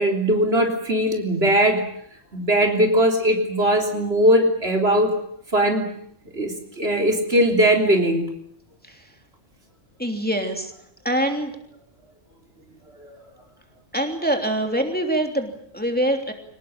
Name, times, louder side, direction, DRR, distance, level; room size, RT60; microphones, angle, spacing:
voice 1, 0.0-1.9 2.3-5.2 5.5-5.9 6.3-8.3 13.0-13.2, right 1 dB, 55° right, 3 dB, 3.7 m, -20 dB
voice 2, 10.0-10.7 11.0-11.5 13.9-16.3, right 1 dB, 5° left, 4 dB, 3.0 m, -24 dB
24.5 x 19.5 x 8.9 m, 0.68 s
omnidirectional pair, 1.3 m